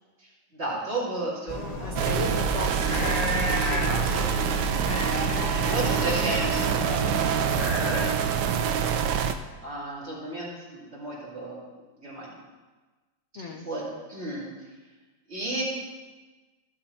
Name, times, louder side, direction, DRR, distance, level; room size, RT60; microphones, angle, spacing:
voice 1, 0.2-1.9 3.8-4.4 5.5-8.1 9.6-11.6 12.0-12.4 13.3-13.8 14.1-14.5 15.3-15.6, right 2 dB, 35° right, -7 dB, 3.4 m, -33 dB
sound 1, 1.5-8.1, left 1 dB, 25° left, 0.9 m, -32 dB
voice 2, 1.8-3.8 4.1-4.2 13.4-13.7, left 3 dB, 60° left, 4 dB, 0.7 m, -36 dB
sound 2, 2.0-9.3, right 7 dB, 70° right, 1.2 m, -26 dB
15.0 x 6.6 x 4.2 m, 1.3 s
omnidirectional pair, 2.1 m